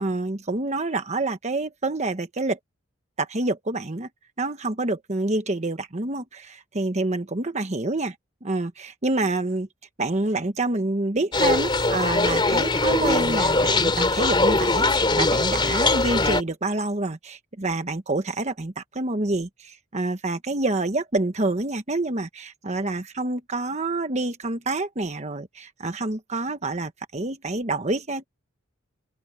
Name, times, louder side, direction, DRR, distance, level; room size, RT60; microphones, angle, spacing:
voice 1, 0.0-2.6 3.2-4.1 4.4-8.1 8.4-9.7 10.0-28.3, right 2 dB, 35° right, 1.2 m, -27 dB
sound 1, 11.3-16.4, left 2 dB, 25° left, 3.0 m, -21 dB
open air
head